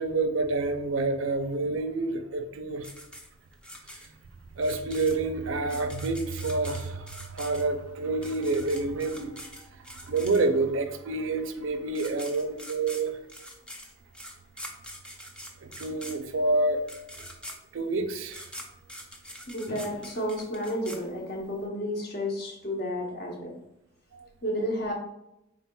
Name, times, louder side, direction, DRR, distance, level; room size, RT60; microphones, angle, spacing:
voice 1, 0.0-2.9 4.6-13.2 15.6-16.8 17.2-17.3 17.7-18.5 24.1-24.3, right 3 dB, 80° right, 8 dB, 0.5 m, -28 dB
sound 1, 2.8-10.8 11.6-11.7 11.9-21.6, equal, 5° left, 0.4 m, -44 dB
voice 2, 19.5-23.6 24.4-24.9, equal, 50° left, 0 dB, 0.9 m, -31 dB
4.3 x 3.7 x 2.3 m, 0.86 s
head